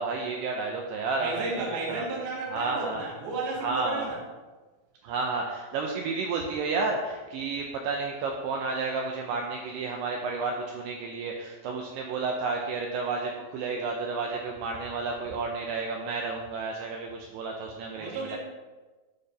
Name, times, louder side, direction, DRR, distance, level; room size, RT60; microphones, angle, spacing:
voice 1, 0.0-2.1 2.5-3.0 3.6-4.1 5.0-18.4, right 4 dB, 85° right, 1 dB, 2.4 m, -31 dB
voice 2, 1.2-4.2 17.9-18.4, right 3 dB, 60° right, -5 dB, 1.4 m, -33 dB
8.9 x 3.5 x 5.3 m, 1.2 s
omnidirectional pair, 5.3 m